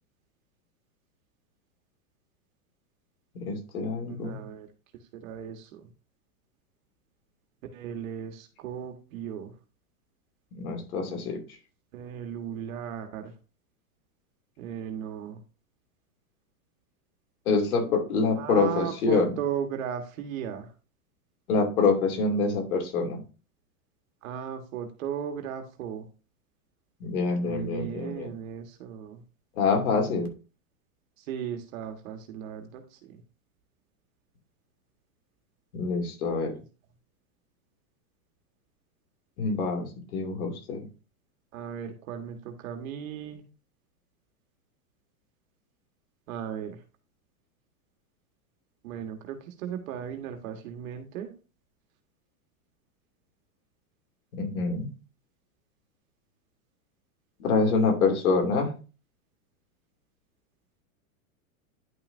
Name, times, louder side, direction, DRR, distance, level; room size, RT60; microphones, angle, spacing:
voice 1, 3.5-4.4 10.5-11.4 17.5-19.3 21.5-23.2 27.0-28.3 29.6-30.3 35.7-36.5 39.4-39.9 40.1-40.8 54.4-54.9 57.4-58.7, left 4 dB, 80° left, 3 dB, 2.8 m, -26 dB
voice 2, 4.1-4.7 5.2-5.9 7.7-9.5 11.9-13.3 14.6-15.4 18.3-20.7 22.3-22.4 24.2-26.0 27.4-29.2 31.2-33.2 41.5-43.4 46.3-46.8 48.8-51.3, right 8 dB, 65° right, 5 dB, 1.7 m, -36 dB
10.5 x 5.8 x 2.7 m, 0.33 s
supercardioid pair, 145°, 43 cm